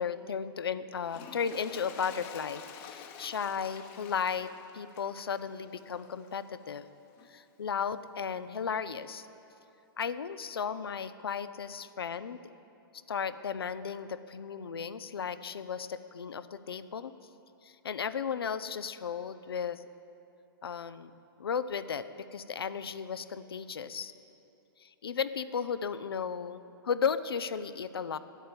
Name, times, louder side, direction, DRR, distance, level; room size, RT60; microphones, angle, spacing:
voice 1, 0.0-6.9 7.3-9.3 10.0-12.5 13.1-17.1 17.6-19.8 20.6-21.1 21.4-24.1 24.8-28.2, left 6 dB, 85° left, 13 dB, 0.5 m, -35 dB
Toilet flush, 1.0-6.5 7.2-7.3, left 7 dB, 45° left, 1.0 m, -49 dB
10.0 x 7.7 x 8.6 m, 2.8 s
hypercardioid pair, 120°, 12 cm